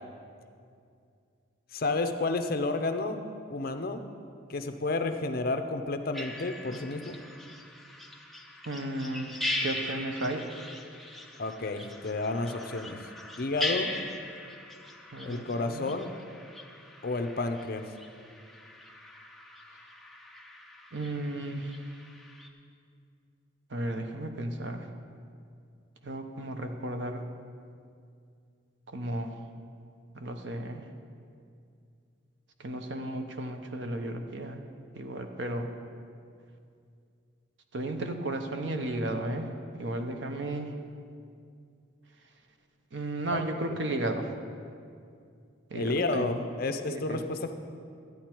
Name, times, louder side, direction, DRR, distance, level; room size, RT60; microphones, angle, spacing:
voice 1, 1.7-3.2 3.5-4.0 4.5-7.2 11.4-13.0 13.4-13.9 15.2-16.1 17.0-17.8 43.3-43.8 45.7-47.5, left 3 dB, 45° left, 7 dB, 0.6 m, -31 dB
sound 1, 6.1-22.5, left 1 dB, ahead, 0.6 m, -40 dB
voice 2, 8.6-9.3 9.6-10.4 15.1-15.9 20.9-21.8 23.7-24.9 26.0-27.2 28.9-29.4 30.1-30.8 32.6-34.6 34.9-35.7 37.7-39.5 39.8-40.7 42.9-44.3 45.7-46.3 46.8-47.2, right 1 dB, 60° right, 6 dB, 0.8 m, -34 dB
13.0 x 9.2 x 4.5 m, 2.4 s
head